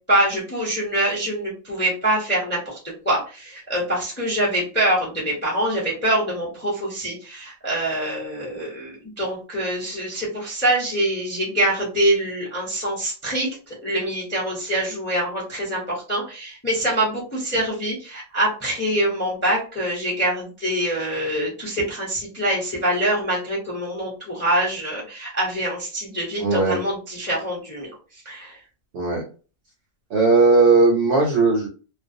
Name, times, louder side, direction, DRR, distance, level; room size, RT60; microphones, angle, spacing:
voice 1, 0.1-2.8 3.0-13.5 13.8-27.9 28.2-28.5, right 1 dB, 10° left, -4 dB, 0.6 m, -24 dB
voice 2, 26.4-26.8 28.9-29.2 30.1-31.7, right 3 dB, 60° right, 0 dB, 0.8 m, -17 dB
2.4 x 2.1 x 2.6 m, 0.36 s
omnidirectional pair, 1.4 m